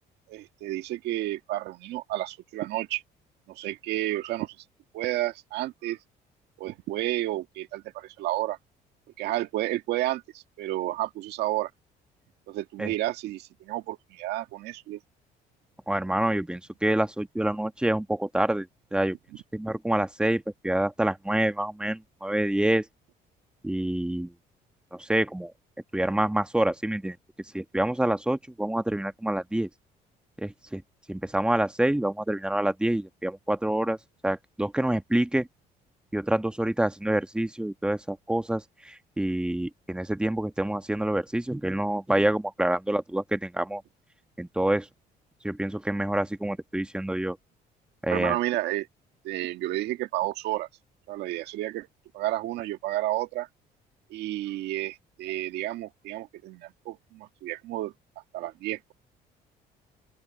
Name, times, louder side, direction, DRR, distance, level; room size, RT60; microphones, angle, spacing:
voice 1, 0.3-3.0 3.5-4.5 4.9-6.0 6.6-8.6 9.2-11.7 12.5-15.0 48.1-48.9 49.2-50.7 51.1-51.9 52.1-53.5 54.1-57.9 58.3-58.9, right 15 dB, 85° right, 1.7 m, -31 dB
voice 2, 15.9-19.2 19.5-22.9 23.6-24.3 24.9-25.5 25.9-27.2 27.5-29.7 30.4-30.8 31.1-34.0 34.2-35.5 36.1-43.8 44.4-44.9 45.4-47.4 48.0-48.4, right 1 dB, 5° right, 1.2 m, -27 dB
open air
cardioid pair, 110°, 17 cm